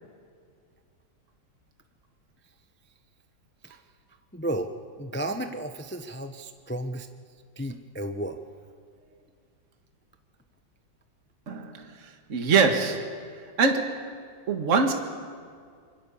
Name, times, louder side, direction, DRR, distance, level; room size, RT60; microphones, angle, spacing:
voice 1, 4.3-4.7 5.0-7.1 7.6-8.4, right 1 dB, 15° left, 7 dB, 0.3 m, -33 dB
voice 2, 11.5-11.9 12.3-13.3 13.6-14.1 14.5-14.9, right 4 dB, 40° right, 4 dB, 1.9 m, -24 dB
26.0 x 23.5 x 7.1 m, 2.1 s
omnidirectional pair, 2.1 m